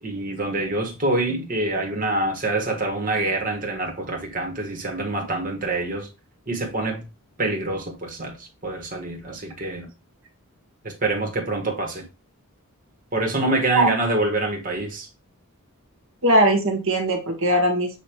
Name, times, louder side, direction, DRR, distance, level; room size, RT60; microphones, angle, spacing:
voice 1, 0.0-6.1 6.5-7.0 7.4-9.9 10.8-12.0 13.1-15.1, right 2 dB, 40° right, 1.6 m, -26 dB
voice 2, 16.2-18.0, right 1 dB, 60° right, 1.4 m, -20 dB
7.1 x 2.9 x 4.5 m
head